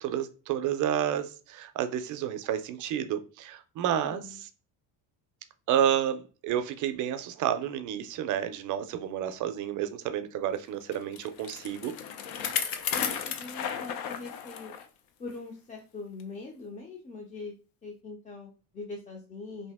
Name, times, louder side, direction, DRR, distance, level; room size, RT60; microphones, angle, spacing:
voice 1, 0.0-4.2 5.7-11.9 12.5-12.7, right 10 dB, 55° right, 0.5 m, -30 dB
voice 2, 3.9-4.4 12.9-14.7 15.2-19.7, left 3 dB, 20° left, 0.4 m, -42 dB
Bicycle, 10.9-14.9 15.3-15.4 16.2-16.3, left 8 dB, 70° left, 0.6 m, -34 dB
2.7 x 2.7 x 3.4 m
cardioid pair, 165°, 36 cm